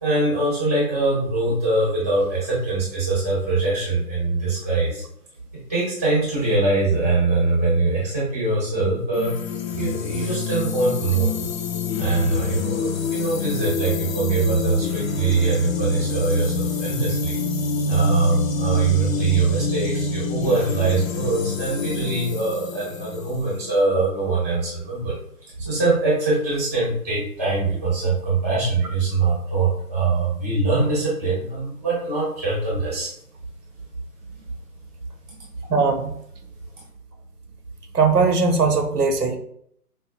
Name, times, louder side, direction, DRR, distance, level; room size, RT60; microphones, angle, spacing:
voice 1, 0.0-5.0 5.5-9.3 9.7-11.3 12.0-17.4 17.9-25.2 25.6-33.1, right 3 dB, 10° right, -7 dB, 0.7 m, -23 dB
sound 1, 9.1-23.8, left 4 dB, 60° left, 0.6 m, -27 dB
voice 2, 35.7-36.1 37.9-39.4, right 4 dB, 90° right, 4 dB, 0.9 m, -19 dB
4.6 x 2.2 x 2.4 m, 0.69 s
figure-of-eight pair, 155°, 46 cm